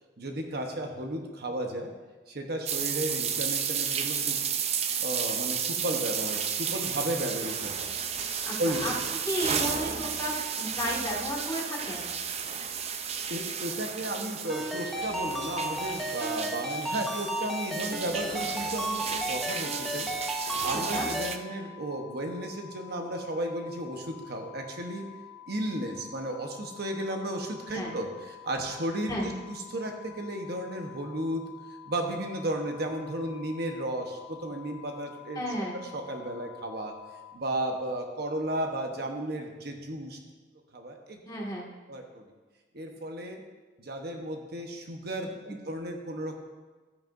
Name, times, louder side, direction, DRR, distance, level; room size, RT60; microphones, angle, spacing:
voice 1, 0.2-1.9 2.3-4.4 5.0-7.9 8.6-8.9 13.3-20.1 20.6-25.1 25.5-31.4 31.8-35.4 35.7-36.9 37.3-40.2 40.7-41.2 41.9-42.3 42.7-43.4 43.8-46.4, right 1 dB, 60° right, 3 dB, 1.0 m, -34 dB
sound 1, 2.7-21.4, right 7 dB, 35° right, 0.5 m, -33 dB
voice 2, 8.4-8.9 9.3-12.1 20.7-21.1 27.7-27.9 29.1-29.3 35.4-35.8 41.3-41.7 45.5-45.6, equal, 20° left, -4 dB, 2.0 m, -33 dB
Ringtone, 14.5-21.4, right 1 dB, ahead, 0.7 m, -34 dB
sound 2, 19.4-37.4, left 11 dB, 85° left, 1.5 m, -49 dB
13.5 x 9.1 x 2.6 m, 1.3 s
head